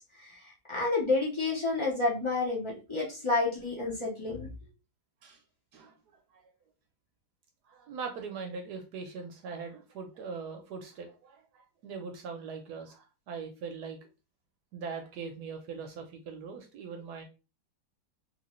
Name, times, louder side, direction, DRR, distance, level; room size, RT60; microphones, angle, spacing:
voice 1, 0.2-4.5, left 3 dB, 50° left, -4 dB, 0.3 m, -30 dB
voice 2, 7.7-14.0 14.7-17.2, right 5 dB, 70° right, 5 dB, 1.0 m, -41 dB
2.9 x 2.8 x 3.0 m, 0.30 s
omnidirectional pair, 2.0 m